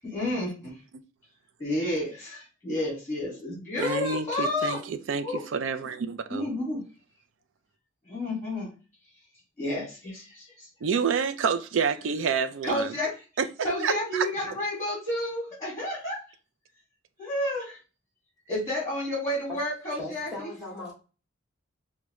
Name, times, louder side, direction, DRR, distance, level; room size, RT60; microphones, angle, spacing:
voice 1, 0.0-0.7 1.6-4.8 5.2-5.4 6.3-6.8 8.0-8.7 9.6-10.7 12.6-13.1 13.6-16.2 17.2-17.8 18.5-20.3, left 1 dB, 15° left, 1.9 m, -30 dB
voice 2, 3.8-6.5 10.8-12.9 13.4-13.5 13.8-14.3, right 6 dB, 70° right, 0.4 m, -28 dB
voice 3, 19.9-20.9, left 2 dB, ahead, 1.6 m, -38 dB
4.7 x 2.2 x 3.0 m
head